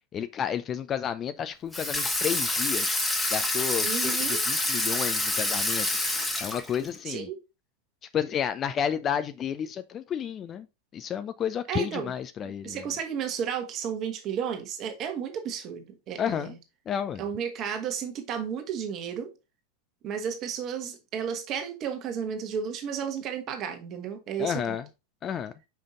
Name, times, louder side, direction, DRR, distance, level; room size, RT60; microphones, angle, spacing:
voice 1, 0.1-3.0 3.3-5.9 6.4-7.3 8.1-10.7 10.9-12.9 16.2-16.5 16.9-17.2 24.4-24.9 25.2-25.5, left 8 dB, 25° left, 0.5 m, -31 dB
Water tap faucet / Sink (filling or washing), 1.7-7.0, left 2 dB, 10° left, 1.2 m, -27 dB
voice 2, 3.8-4.4 7.1-7.4 11.7-12.1 12.6-16.5 17.2-19.3 20.0-24.8, right 7 dB, 35° right, 1.3 m, -33 dB
5.6 x 5.1 x 3.8 m
figure-of-eight pair, 90°, 0 cm